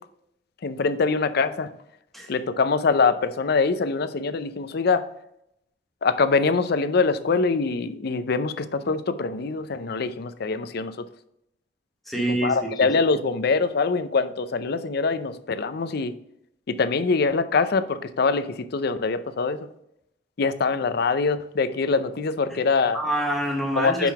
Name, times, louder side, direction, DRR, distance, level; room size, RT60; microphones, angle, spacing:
voice 1, 0.6-1.7 2.3-5.0 6.0-10.9 12.4-16.1 16.7-19.6 20.4-23.0 23.8-24.1, left 4 dB, 60° left, 13 dB, 0.5 m, -24 dB
voice 2, 12.1-12.9 22.5-22.6 22.9-24.1, right 1 dB, ahead, -1 dB, 1.1 m, -27 dB
5.4 x 4.7 x 5.7 m, 0.78 s
head